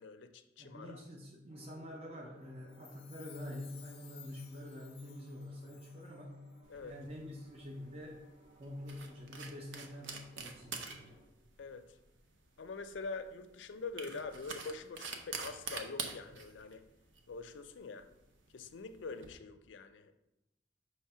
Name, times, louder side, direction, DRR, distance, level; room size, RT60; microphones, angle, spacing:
voice 1, 0.0-1.0 6.7-7.0 11.6-12.0 12.6-16.8 17.3-18.1 18.5-20.1, left 4 dB, 80° left, 9 dB, 0.5 m, -45 dB
voice 2, 0.6-6.4 6.8-8.2 8.6-11.2, left 1 dB, 35° right, -1 dB, 0.7 m, -47 dB
sound 1, 1.5-11.3, right 2 dB, 50° right, 1.9 m, -64 dB
Chime, 2.6-6.2 6.5-6.6, left 9 dB, 30° left, 0.5 m, -58 dB
sound 2, 6.7-19.3, right 5 dB, 85° right, 0.7 m, -47 dB
5.6 x 3.2 x 5.6 m, 0.94 s
head